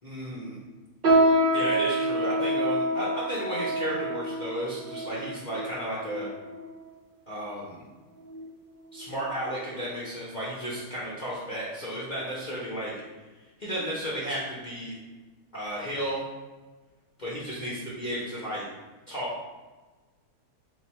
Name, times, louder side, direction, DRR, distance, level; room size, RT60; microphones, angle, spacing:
voice 1, 0.0-0.6 1.5-6.3 7.3-7.8 8.9-12.9 13.6-14.9 15.5-16.2 17.2-18.6 19.1-19.3, equal, 40° left, -7 dB, 0.7 m, -33 dB
sound 1, 1.0-6.7 7.4-7.5 8.2-8.5 8.9-9.1 9.8-9.9, right 1 dB, 60° right, 0.5 m, -26 dB
3.8 x 2.6 x 4.2 m, 1.3 s
omnidirectional pair, 1.6 m